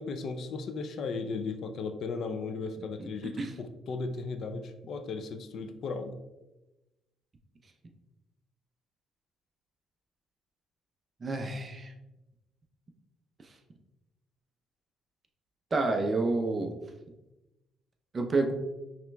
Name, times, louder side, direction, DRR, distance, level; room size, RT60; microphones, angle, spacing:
voice 1, 0.0-6.2, left 4 dB, 60° left, 8 dB, 0.4 m, -36 dB
voice 2, 11.2-11.9 15.7-16.8 18.1-18.5, right 3 dB, 35° right, 4 dB, 0.6 m, -28 dB
5.7 x 3.0 x 2.2 m, 1.0 s
cardioid pair, 85°, 0 cm